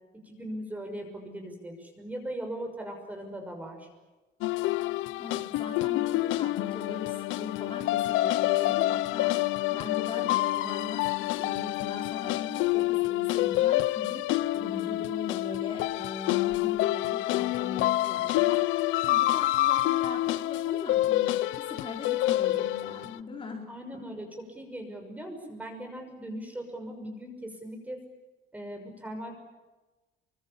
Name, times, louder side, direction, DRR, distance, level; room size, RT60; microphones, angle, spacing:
voice 1, 0.2-3.9 23.7-28.0 28.5-29.3, right 1 dB, 10° right, 4 dB, 6.1 m, -39 dB
sound 1, 4.4-23.2, left 16 dB, 85° left, 0.8 m, -27 dB
voice 2, 5.2-9.4 9.7-23.7 23.9-24.0, left 4 dB, 25° left, 0 dB, 4.7 m, -40 dB
28.5 x 25.0 x 7.3 m, 1.2 s
cardioid pair, 160°, 20 cm